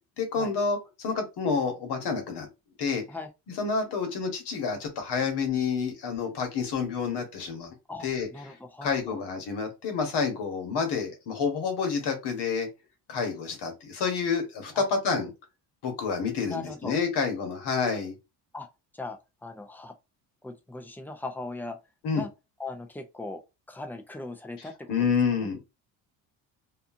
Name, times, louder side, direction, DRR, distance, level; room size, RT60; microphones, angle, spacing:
voice 1, 0.2-2.5 2.8-3.0 3.6-7.7 8.0-8.3 8.8-12.7 13.1-15.3 15.8-18.1 22.0-22.2 24.9-25.6, left 5 dB, 65° left, 1.1 m, -28 dB
voice 2, 7.9-9.2 14.7-14.8 16.4-16.9 18.5-18.7 18.9-19.9 20.4-21.8 22.1-22.3 22.6-25.5, left 3 dB, 5° left, 0.5 m, -39 dB
2.6 x 2.3 x 2.6 m
supercardioid pair, 80°, 43 cm